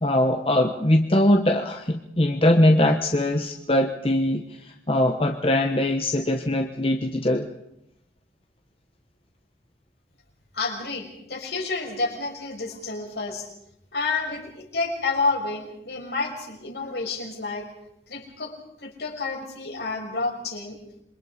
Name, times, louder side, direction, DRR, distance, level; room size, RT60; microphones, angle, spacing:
voice 1, 0.0-7.5, left 1 dB, 30° left, 4 dB, 1.1 m, -21 dB
voice 2, 10.5-13.5 13.9-17.7 18.1-18.5 18.8-20.8, left 3 dB, 70° left, 1 dB, 5.8 m, -29 dB
27.5 x 23.5 x 5.0 m, 0.78 s
head